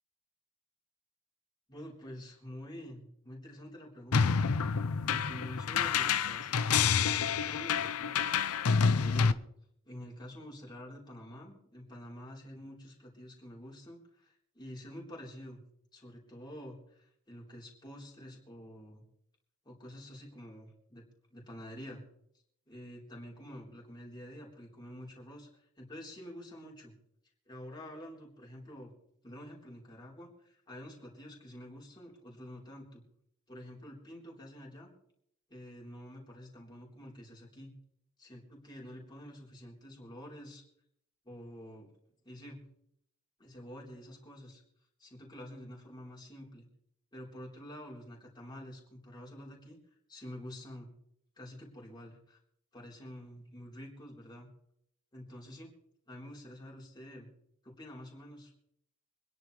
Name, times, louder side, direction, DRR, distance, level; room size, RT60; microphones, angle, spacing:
voice 1, 1.7-4.4 5.0-8.2 8.9-9.4 9.9-15.6 15.9-19.0 19.6-22.0 22.7-26.9 27.5-28.9 29.2-33.0 33.5-34.9 35.5-37.7 38.2-40.6 41.2-41.9 42.2-42.6 43.4-44.6 45.0-46.7 47.1-49.8 50.1-50.9 51.4-52.4 52.7-54.5 55.1-55.7 56.1-57.3 57.6-58.5, equal, 20° left, -3 dB, 3.7 m, -48 dB
sound 1, 4.1-9.3, left 6 dB, 80° left, 0.6 m, -28 dB
25.0 x 10.5 x 3.2 m, 0.71 s
head